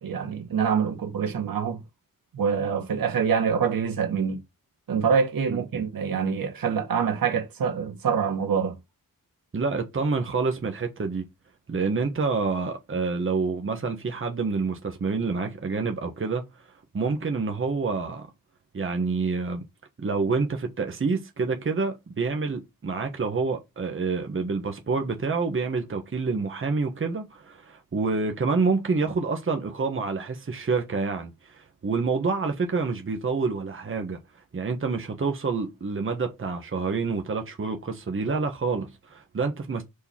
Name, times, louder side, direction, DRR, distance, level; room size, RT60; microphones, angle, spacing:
voice 1, 0.0-1.8 2.3-4.4 4.9-8.8, right 6 dB, 85° right, 1.8 m, -25 dB
voice 2, 5.5-5.8 9.5-11.3 11.7-16.5 16.9-18.3 18.7-19.6 20.0-34.2 34.5-39.8, right 4 dB, 35° right, 1.3 m, -27 dB
5.1 x 4.8 x 4.4 m
wide cardioid pair, 130°, 34 cm